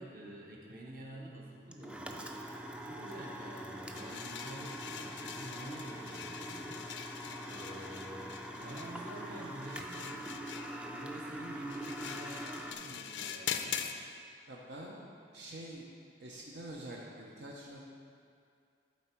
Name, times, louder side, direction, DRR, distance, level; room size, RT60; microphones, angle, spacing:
voice 1, 0.0-2.4 2.8-7.1 7.4-10.4 10.8-13.9, right 1 dB, 50° right, -2 dB, 1.1 m, -48 dB
sound 1, 1.7-12.7, equal, 5° right, 0.3 m, -44 dB
sound 2, 4.0-14.0, left 8 dB, 90° left, 0.5 m, -43 dB
voice 2, 14.5-15.1 15.3-15.9 16.2-17.8, right 1 dB, 75° right, -3 dB, 0.7 m, -46 dB
11.5 x 4.2 x 4.5 m, 2.3 s
head